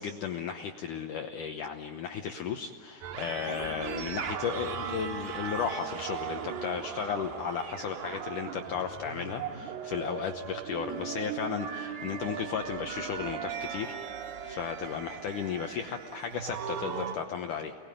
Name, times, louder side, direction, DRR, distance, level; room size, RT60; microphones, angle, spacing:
voice 1, 0.0-14.0 14.4-17.8, left 7 dB, 90° left, 4 dB, 1.8 m, -35 dB
sound 1, 3.0-17.2, right 7 dB, 70° right, 3.6 m, -38 dB
29.5 x 21.0 x 9.1 m, 2.4 s
omnidirectional pair, 5.2 m